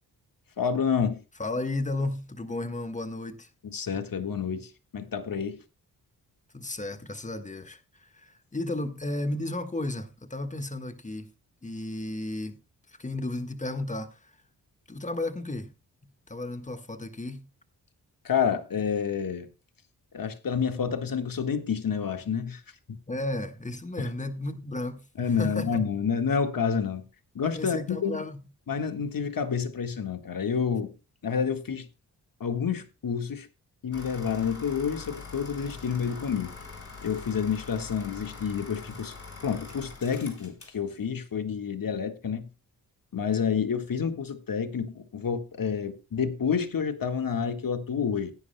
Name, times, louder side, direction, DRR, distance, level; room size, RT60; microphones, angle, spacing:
voice 1, 0.6-1.2 3.6-5.6 18.2-19.5 20.1-22.6 22.9-23.0 24.0-24.1 25.2-27.1 27.4-28.2 28.7-30.9 31.2-31.9 32.4-33.5 33.8-36.6 37.0-39.1 39.4-42.5 43.1-48.3, left 6 dB, 55° left, 1.7 m, -29 dB
voice 2, 1.4-3.5 6.5-11.3 11.6-12.6 13.0-14.3 14.9-15.7 16.3-17.5 23.1-25.8 27.6-28.4, left 2 dB, 20° left, 1.5 m, -33 dB
sound 1, 33.9-40.8, left 4 dB, 35° left, 4.6 m, -43 dB
16.0 x 10.0 x 2.2 m
supercardioid pair, 45°, 41 cm